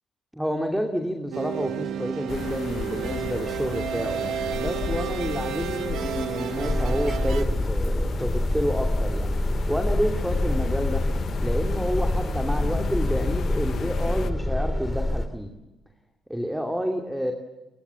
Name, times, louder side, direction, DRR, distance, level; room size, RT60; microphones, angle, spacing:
voice 1, 0.3-9.3 9.7-11.0 11.4-15.5 16.3-17.3, equal, 5° right, 3 dB, 2.7 m, -29 dB
sound 1, 1.3-7.4, right 9 dB, 75° right, 1.5 m, -31 dB
sound 2, 2.3-14.3, left 7 dB, 60° left, 1.1 m, -34 dB
sound 3, 6.5-15.3, left 1 dB, 15° left, 2.6 m, -26 dB
29.5 x 23.0 x 7.1 m, 1.1 s
cardioid pair, 90°, 0 cm